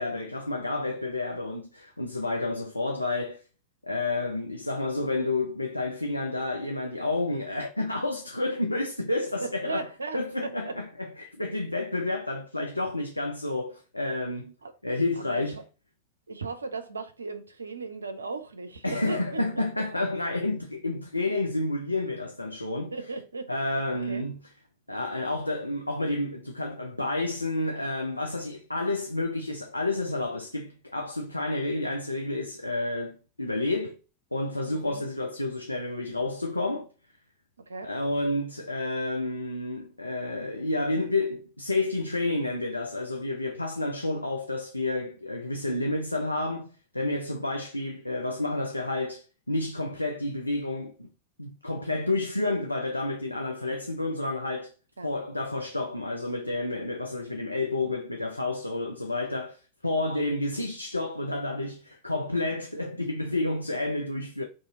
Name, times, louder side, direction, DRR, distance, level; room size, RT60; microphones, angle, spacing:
voice 1, 0.0-3.4 3.8-9.9 10.1-14.5 14.8-15.6 18.8-23.0 23.5-24.4 24.9-33.9 34.3-36.9 37.8-51.1 51.4-54.7 55.0-64.4, left 2 dB, 85° left, 0.4 m, -30 dB
voice 2, 9.4-10.8 14.6-14.7 15.2-15.6 16.3-19.4 22.9-23.5 24.1-24.2 34.7-35.1 37.7-37.9 55.0-55.1, right 3 dB, 75° right, 0.5 m, -37 dB
2.8 x 2.6 x 3.7 m
figure-of-eight pair, 90°, 0 cm